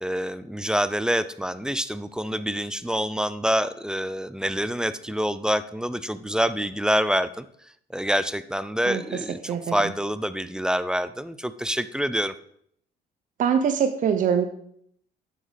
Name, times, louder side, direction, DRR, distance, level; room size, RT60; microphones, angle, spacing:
voice 1, 0.0-7.5 7.9-12.3, equal, 5° right, 13 dB, 0.5 m, -26 dB
voice 2, 13.4-14.5, right 7 dB, 50° right, 7 dB, 0.8 m, -23 dB
9.4 x 6.3 x 5.1 m, 0.67 s
cardioid pair, 110°, 17 cm